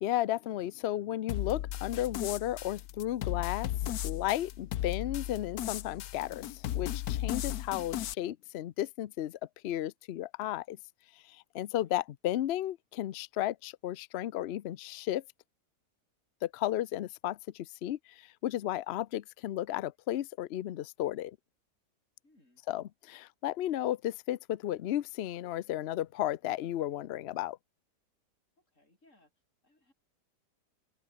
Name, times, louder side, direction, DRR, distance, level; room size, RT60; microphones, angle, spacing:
voice 1, 0.0-10.8 11.2-15.2 16.4-21.4 22.7-27.6, left 13 dB, 85° left, 0.5 m, -34 dB
sound 1, 1.3-8.1, left 12 dB, 70° left, 1.2 m, -36 dB
voice 2, 22.2-22.6 28.6-29.3 29.6-29.9, left 1 dB, 45° left, 8.0 m, -66 dB
open air
omnidirectional pair, 1.8 m